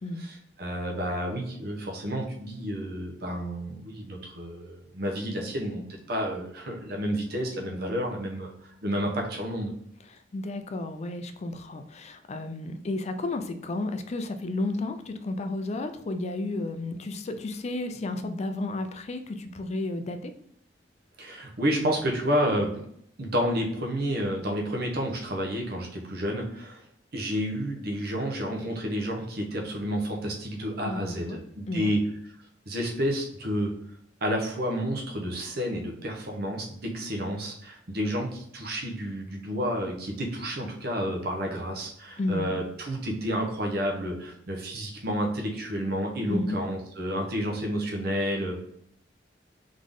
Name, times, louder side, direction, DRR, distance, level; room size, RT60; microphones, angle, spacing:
voice 1, 0.1-9.7 21.2-22.8 23.2-26.8 27.1-32.0 32.7-33.7 34.2-48.6, equal, 60° right, 0 dB, 1.0 m, -30 dB
voice 2, 10.1-20.3 30.8-31.4 31.7-31.9 42.2-42.6 46.3-46.6, left 2 dB, 40° left, 8 dB, 0.4 m, -32 dB
3.8 x 3.7 x 3.6 m, 0.69 s
head